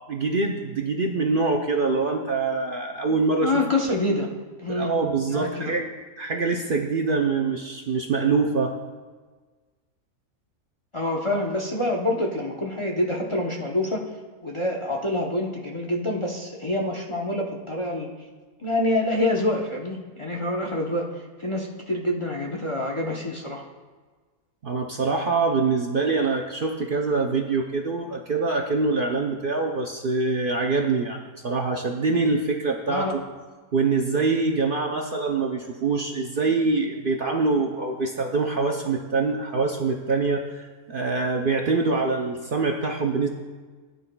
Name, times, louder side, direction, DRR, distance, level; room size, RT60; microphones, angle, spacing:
voice 1, 0.1-3.6 4.7-5.9 6.2-8.8 24.6-33.2 33.7-43.3, right 3 dB, 50° right, 2 dB, 0.7 m, -24 dB
voice 2, 3.4-4.3 4.6-4.9 5.3-5.7 10.9-14.0 14.4-18.1 18.6-23.6 32.9-33.1, left 1 dB, 30° left, -1 dB, 0.7 m, -26 dB
16.0 x 9.4 x 2.3 m, 1.4 s
omnidirectional pair, 1.4 m